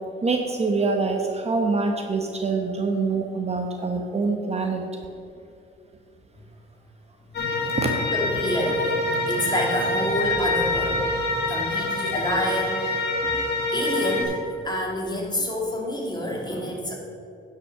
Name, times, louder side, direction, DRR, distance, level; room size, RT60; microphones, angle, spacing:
voice 1, 0.2-4.8 7.8-7.9, right 4 dB, 30° right, 3 dB, 1.0 m, -25 dB
sound 1, 7.3-14.2, left 2 dB, 60° left, 1.9 m, -25 dB
voice 2, 8.1-11.1 11.5-13.0 13.7-14.4 14.6-16.9, left 1 dB, 20° left, -2 dB, 2.5 m, -28 dB
9.9 x 5.8 x 6.0 m, 2.6 s
cardioid pair, 90°, 20 cm